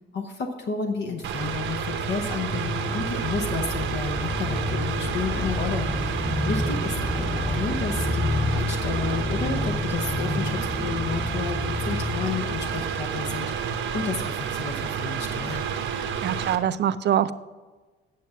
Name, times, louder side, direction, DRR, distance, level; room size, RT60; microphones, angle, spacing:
voice 1, 0.1-15.7, left 5 dB, 60° left, 3 dB, 1.0 m, -31 dB
sound 1, 1.2-14.0, left 2 dB, 10° left, 0.3 m, -30 dB
Mechanical fan, 1.2-16.6, right 7 dB, 75° right, 1.0 m, -30 dB
voice 2, 16.0-17.3, right 10 dB, 60° right, 14 dB, 0.5 m, -24 dB
9.4 x 7.0 x 5.8 m, 1.3 s
cardioid pair, 90°, 20 cm